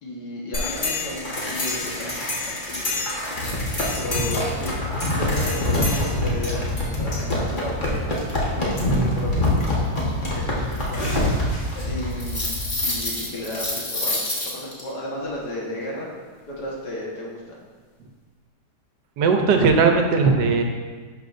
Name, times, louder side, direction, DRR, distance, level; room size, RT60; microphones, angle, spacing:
voice 1, 0.0-3.1 3.9-8.1 8.6-11.2 11.5-12.5 12.8-16.1 16.5-17.4, left 1 dB, 70° left, -3 dB, 2.0 m, -34 dB
sound 1, 0.5-14.8, left 1 dB, 30° left, 1.3 m, -25 dB
voice 2, 19.2-20.6, right 4 dB, 75° right, 4 dB, 1.3 m, -18 dB
11.5 x 5.5 x 2.6 m, 1.5 s
omnidirectional pair, 1.9 m